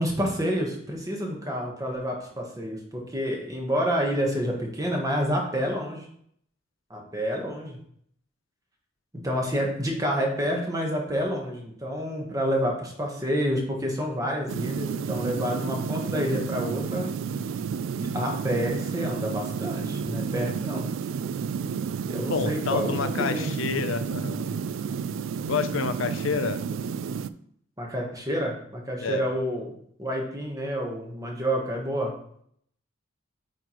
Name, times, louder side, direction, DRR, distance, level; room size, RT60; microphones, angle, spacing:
voice 1, 0.0-6.1 6.9-7.8 9.2-17.2 18.0-20.9 22.1-23.5 27.8-29.7 30.0-32.1, equal, 15° right, 0 dB, 1.2 m, -29 dB
sound 1, 14.5-27.3, right 6 dB, 75° right, 0.3 m, -31 dB
voice 2, 22.3-24.5 25.4-26.6 29.0-29.3, left 5 dB, 75° left, 11 dB, 0.6 m, -29 dB
9.0 x 4.0 x 3.0 m, 0.66 s
head